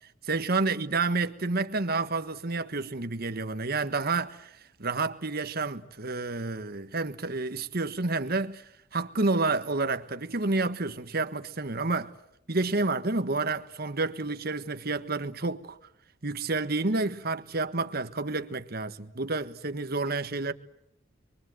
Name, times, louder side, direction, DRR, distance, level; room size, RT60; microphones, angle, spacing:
voice 1, 0.2-12.1 12.5-15.8 16.2-20.5, right 3 dB, 50° right, 1.4 m, -29 dB
29.0 x 23.5 x 8.0 m
head